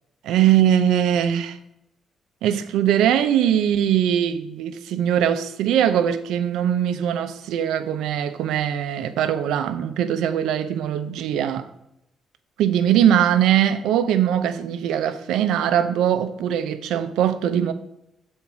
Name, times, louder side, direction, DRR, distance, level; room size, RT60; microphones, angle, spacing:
voice 1, 0.2-1.6 2.4-11.7 12.6-17.7, right 10 dB, 85° right, 0.6 m, -21 dB
7.1 x 4.4 x 6.0 m
cardioid pair, 90°, 0 cm